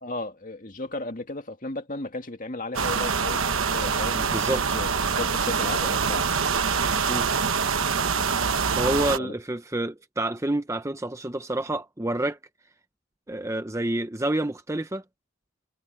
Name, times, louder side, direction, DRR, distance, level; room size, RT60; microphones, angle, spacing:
voice 1, 0.0-6.3 9.2-9.3, left 2 dB, 35° left, 2.1 m, -35 dB
sound 1, 2.7-9.2, right 5 dB, 65° right, 1.1 m, -25 dB
voice 2, 4.2-4.8 7.1-7.3 8.7-12.4 13.3-15.0, right 1 dB, 15° right, 0.6 m, -28 dB
head